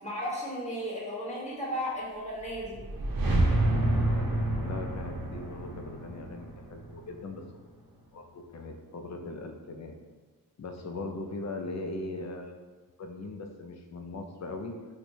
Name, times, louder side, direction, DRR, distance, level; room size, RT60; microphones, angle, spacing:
voice 1, 0.0-2.8, equal, 20° left, -7 dB, 1.2 m, -34 dB
sound 1, 2.4-7.6, right 1 dB, 75° right, 0.6 m, -29 dB
voice 2, 4.6-7.4 8.1-9.9 10.6-12.6 13.0-14.7, left 2 dB, 50° left, 3 dB, 0.4 m, -39 dB
4.3 x 2.2 x 2.7 m, 1.3 s
wide cardioid pair, 75°, 35 cm